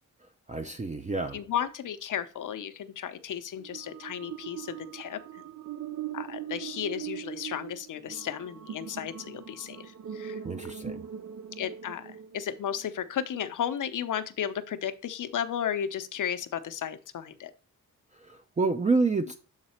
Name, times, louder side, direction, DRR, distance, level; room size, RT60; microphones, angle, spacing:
voice 1, 0.5-1.4 10.4-11.1 18.1-19.4, right 3 dB, 20° right, 0.5 m, -28 dB
voice 2, 1.3-5.2 6.1-10.4 11.6-17.5, left 9 dB, 70° left, 0.8 m, -34 dB
sound 1, 3.6-12.9, right 10 dB, 65° right, 0.7 m, -41 dB
7.4 x 4.0 x 4.3 m
wide cardioid pair, 105°, 32 cm